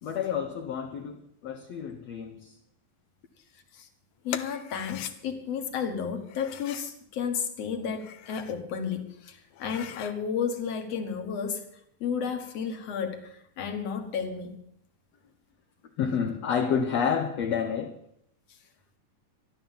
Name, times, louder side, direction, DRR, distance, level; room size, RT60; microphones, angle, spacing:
voice 1, 0.0-2.5 16.0-18.0, left 7 dB, 70° left, 1.7 m, -29 dB
voice 2, 4.2-11.7 12.0-14.6, left 6 dB, 55° left, 2.3 m, -32 dB
sound 1, 4.3-5.1 6.2-6.9 7.8-8.6 9.0-9.1 9.5-10.2, left 12 dB, 85° left, 2.5 m, -41 dB
13.5 x 12.0 x 7.3 m
omnidirectional pair, 4.1 m